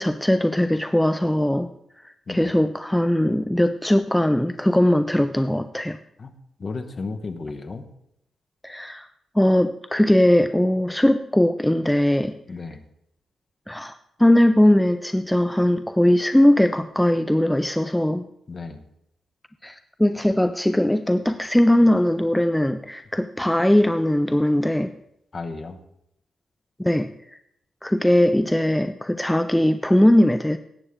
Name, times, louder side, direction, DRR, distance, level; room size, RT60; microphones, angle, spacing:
voice 1, 0.0-1.7 2.0-6.0 8.6-9.1 9.4-12.4 13.7-13.9 14.2-18.3 19.6-24.9 26.8-27.4 27.8-30.6, left 1 dB, 5° left, 9 dB, 0.3 m, -20 dB
voice 2, 6.6-7.8 12.5-12.8 18.5-18.8 25.3-25.8, left 3 dB, 35° left, 6 dB, 1.0 m, -33 dB
18.0 x 8.2 x 3.6 m, 0.77 s
wide cardioid pair, 145°, 0 cm